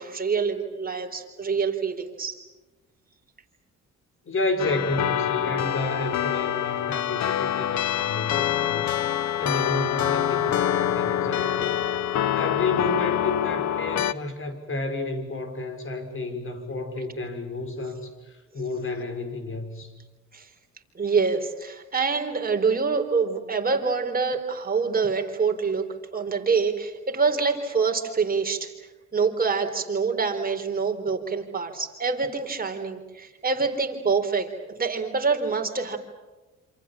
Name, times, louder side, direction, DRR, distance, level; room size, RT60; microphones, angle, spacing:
voice 1, 0.0-2.4 20.3-20.4 21.0-25.8 26.1-28.7 29.1-36.0, right 5 dB, 30° right, 4 dB, 4.1 m, -26 dB
voice 2, 4.2-9.0 9.4-11.8 12.3-19.9, left 2 dB, 45° left, 7 dB, 5.9 m, -31 dB
sound 1, 4.6-14.1, left 11 dB, 65° left, 0.9 m, -25 dB
27.5 x 27.5 x 7.5 m, 1.1 s
cardioid pair, 90°, 30 cm